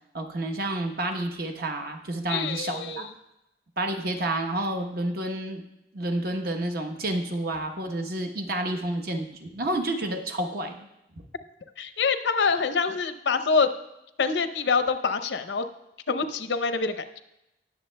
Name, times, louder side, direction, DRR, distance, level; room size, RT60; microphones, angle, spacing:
voice 1, 0.1-3.1 3.8-5.6 5.9-10.9, right 1 dB, 60° right, 4 dB, 1.0 m, -30 dB
voice 2, 2.3-3.1 11.8-13.7 14.2-15.6 16.1-17.0, left 5 dB, 85° left, 10 dB, 0.6 m, -25 dB
19.5 x 7.1 x 2.2 m, 0.87 s
head